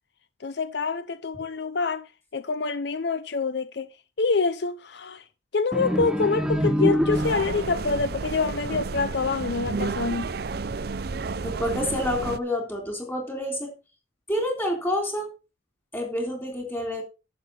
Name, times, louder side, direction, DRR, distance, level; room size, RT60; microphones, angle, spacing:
voice 1, 0.4-2.1 2.3-3.9 4.2-5.2 5.5-10.3, left 4 dB, 60° left, 0.6 m, -26 dB
sound 1, 5.7-7.8, equal, 5° right, 0.8 m, -25 dB
sound 2, 7.1-12.4, right 4 dB, 55° right, 0.5 m, -31 dB
voice 2, 11.4-13.7 14.3-15.3 15.9-17.0, left 1 dB, 10° left, 3.6 m, -28 dB
11.0 x 8.1 x 4.2 m
head